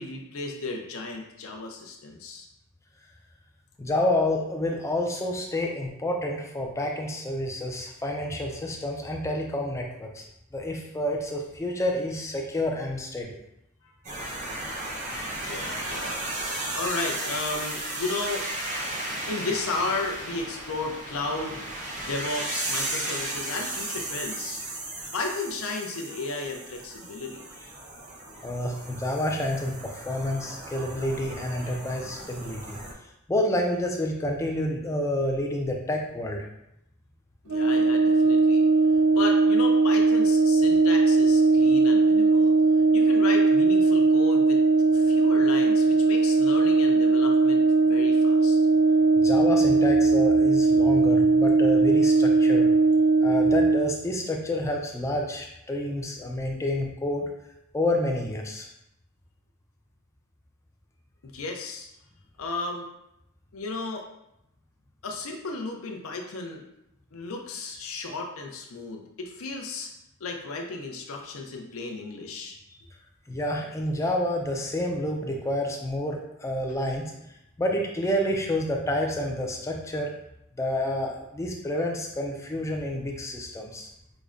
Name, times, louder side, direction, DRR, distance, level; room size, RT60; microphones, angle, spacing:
voice 1, 0.0-2.5 13.8-13.9 15.4-16.2 16.7-18.5 19.3-21.6 22.0-24.6 25.1-27.4 37.4-38.7 39.1-42.5 42.9-44.6 44.9-48.6 61.2-61.9 62.4-62.9 63.5-64.1 65.0-66.6 67.1-69.9 70.2-72.6, left 3 dB, 65° left, 2 dB, 0.5 m, -34 dB
voice 2, 3.8-10.2 10.5-13.4 28.4-32.8 33.3-36.4 49.1-52.7 53.2-57.3 57.7-58.7 72.7-72.8 73.3-77.1 77.6-80.1 80.6-83.9, left 1 dB, 15° left, 1 dB, 0.3 m, -29 dB
sound 1, 14.0-32.9, right 1 dB, 35° right, 0.6 m, -35 dB
Brass instrument, 37.5-53.9, right 3 dB, 80° right, 0.6 m, -19 dB
5.0 x 2.1 x 2.4 m, 0.83 s
head